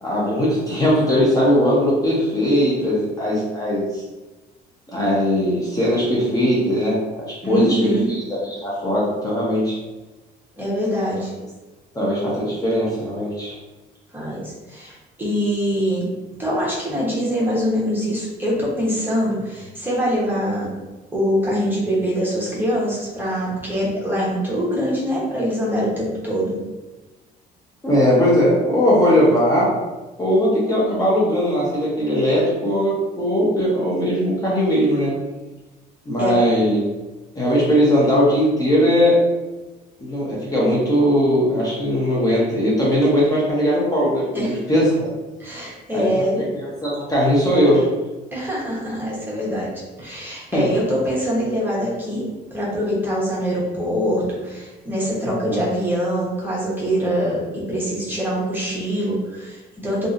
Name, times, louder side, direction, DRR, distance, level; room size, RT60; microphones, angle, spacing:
voice 1, 0.0-4.0 4.9-8.2 8.5-9.8 11.9-13.6 27.8-29.7 30.2-35.1 36.1-36.8 37.4-39.2 40.0-45.1 45.9-46.0 46.4-47.9 50.5-50.7 55.2-55.6, equal, 20° left, -6 dB, 0.8 m, -19 dB
voice 2, 7.4-8.1 10.6-11.3 14.1-16.1 16.4-20.7 21.1-26.6 36.2-36.4 44.3-44.6 45.4-46.4 48.3-49.7 50.0-52.2 52.5-60.1, equal, 10° right, -6 dB, 0.9 m, -24 dB
2.7 x 2.5 x 2.4 m, 1.1 s
cardioid pair, 110°, 17 cm